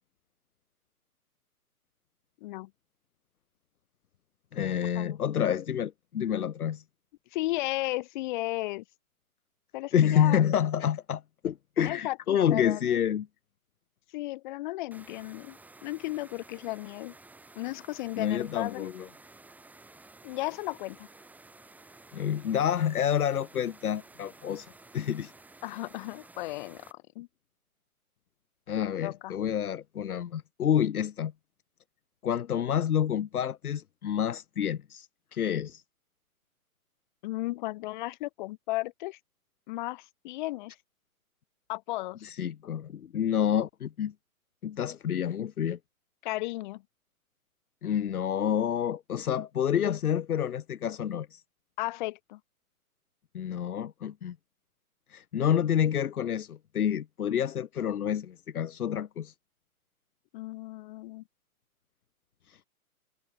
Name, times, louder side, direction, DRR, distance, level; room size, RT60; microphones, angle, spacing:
voice 1, 4.5-6.8 9.9-13.3 18.2-19.1 22.1-24.7 24.9-25.3 28.7-31.3 32.2-35.1 35.3-35.8 42.2-44.1 44.6-45.8 47.8-51.4 53.3-54.4 55.1-59.3, left 9 dB, 80° left, 1.1 m, -28 dB
voice 2, 7.3-8.8 9.7-10.5 11.8-13.0 14.1-17.1 17.6-18.9 20.2-21.1 25.6-27.3 28.7-29.4 37.2-39.2 39.7-40.7 41.7-42.3 46.2-46.8 51.8-52.4 60.3-61.2, left 19 dB, 30° left, 6.0 m, -35 dB
sound 1, 14.9-26.9, right 2 dB, 5° right, 7.7 m, -53 dB
hypercardioid pair, 155°, 44 cm